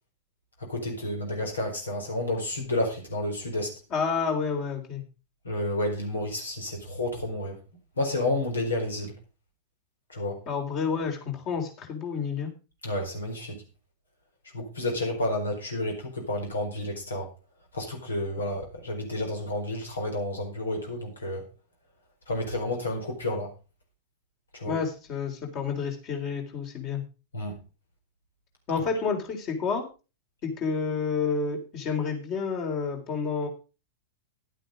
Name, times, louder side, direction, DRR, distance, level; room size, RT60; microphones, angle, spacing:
voice 1, 0.6-3.7 5.4-7.6 8.0-9.1 10.1-10.4 12.8-13.6 14.5-17.3 17.7-21.5 22.3-23.5 24.5-24.8 27.3-27.6, left 1 dB, 75° left, 2 dB, 4.4 m, -30 dB
voice 2, 3.9-5.0 10.5-12.5 24.7-27.0 28.7-29.8 30.4-33.5, left 5 dB, 35° left, 3 dB, 3.6 m, -29 dB
11.5 x 9.1 x 5.1 m, 0.32 s
figure-of-eight pair, 95°, 0 cm